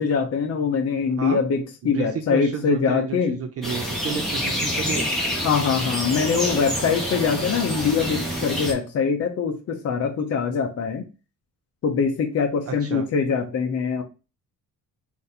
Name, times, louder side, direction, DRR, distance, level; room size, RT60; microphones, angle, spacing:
voice 1, 0.0-3.4 5.4-11.0 11.8-14.0, left 6 dB, 45° left, 3 dB, 0.7 m, -23 dB
voice 2, 1.8-5.1 12.7-13.0, right 6 dB, 45° right, 5 dB, 0.5 m, -31 dB
sound 1, 3.6-8.7, equal, ahead, 1.2 m, -27 dB
4.0 x 2.6 x 4.1 m, 0.30 s
wide cardioid pair, 180°, 34 cm